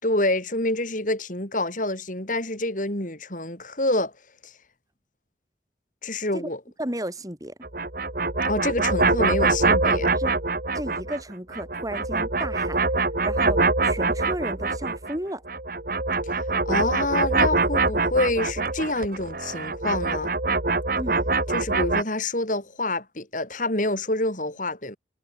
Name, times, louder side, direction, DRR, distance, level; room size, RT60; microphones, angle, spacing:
voice 1, 0.0-4.1 4.4-4.5 6.0-6.6 8.4-10.1 16.2-20.3 21.5-25.0, left 2 dB, 45° left, 4.8 m, -27 dB
voice 2, 6.8-7.5 9.8-10.4 10.7-12.8 13.2-15.4 20.9-21.2, right 1 dB, 20° right, 4.1 m, -33 dB
sound 1, 7.6-11.2 11.5-15.2 15.5-22.0, right 3 dB, 50° right, 2.3 m, -24 dB
head